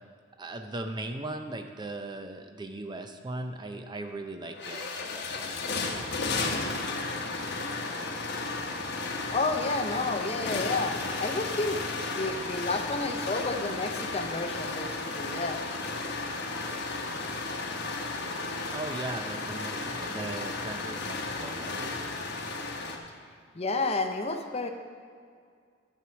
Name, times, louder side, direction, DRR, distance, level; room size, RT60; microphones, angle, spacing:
voice 1, 0.4-6.1 18.7-21.9, right 2 dB, 20° right, 6 dB, 0.5 m, -38 dB
sound 1, 4.1-4.2 4.4-23.0, left 3 dB, 60° left, 1.1 m, -34 dB
voice 2, 9.3-11.8 12.1-15.6 23.5-24.7, left 3 dB, 30° left, 6 dB, 0.7 m, -31 dB
11.5 x 4.7 x 7.0 m, 2.1 s
head